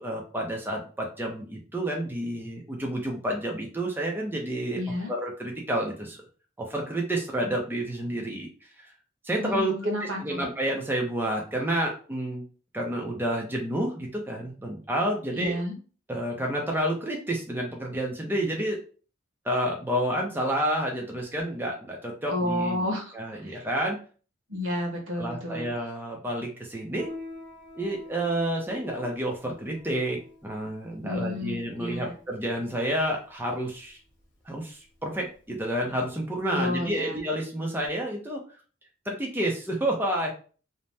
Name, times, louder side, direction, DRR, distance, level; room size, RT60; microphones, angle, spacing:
voice 1, 0.0-4.8 5.1-6.2 6.6-8.5 9.2-12.4 12.7-15.5 16.1-18.8 19.4-22.8 23.1-24.0 25.2-27.1 27.8-34.0 34.5-38.4 39.1-40.3, right 1 dB, 10° right, -1 dB, 0.5 m, -29 dB
voice 2, 4.7-5.1 9.4-10.4 15.3-15.7 22.3-23.6 24.5-25.7 31.0-32.1 36.5-37.2, left 1 dB, 90° right, 1 dB, 1.0 m, -31 dB
Piano, 26.9-36.9, left 2 dB, 45° left, 1.1 m, -46 dB
2.7 x 2.1 x 3.2 m, 0.38 s
head